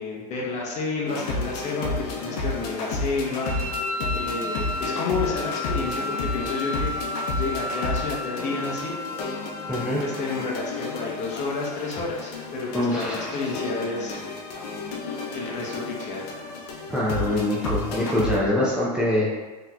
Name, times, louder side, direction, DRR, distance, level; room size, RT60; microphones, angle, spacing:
voice 1, 0.0-1.9 2.2-3.5 4.1-7.1 7.4-9.0 10.0-14.3 14.6-14.7 15.3-16.3, left 3 dB, 35° left, -2 dB, 0.8 m, -30 dB
sound 1, 1.1-18.4, left 3 dB, 70° left, 0.7 m, -32 dB
Wind instrument woodwind instrument, 3.4-10.0, left 2 dB, 70° right, 1.1 m, -32 dB
voice 2, 9.7-10.0 12.7-13.4 16.9-19.3, left 1 dB, 5° right, -7 dB, 0.5 m, -24 dB
3.6 x 2.9 x 2.2 m, 1.3 s
supercardioid pair, 125°, 21 cm